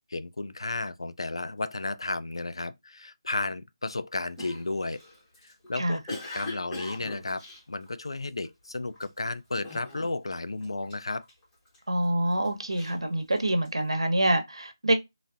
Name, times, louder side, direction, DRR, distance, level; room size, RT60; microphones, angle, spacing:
voice 1, 0.1-5.0 5.4-11.2, left 2 dB, 80° left, 0.4 m, -33 dB
Cough, 4.4-8.5 8.9-9.2 9.6-10.4 10.6-11.8 12.3-13.8, left 2 dB, 10° left, 0.8 m, -41 dB
voice 2, 11.9-15.0, right 1 dB, 85° right, 0.8 m, -26 dB
4.0 x 2.1 x 2.4 m
figure-of-eight pair, 165°, 3 cm